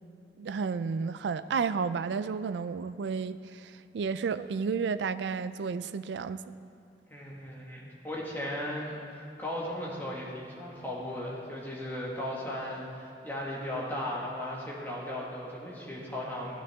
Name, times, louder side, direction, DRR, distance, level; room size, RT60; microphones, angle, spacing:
voice 1, 0.4-6.4, right 5 dB, 75° right, 13 dB, 0.3 m, -32 dB
voice 2, 7.1-16.6, left 1 dB, 10° left, -5 dB, 1.7 m, -36 dB
12.5 x 10.0 x 3.5 m, 2.8 s
head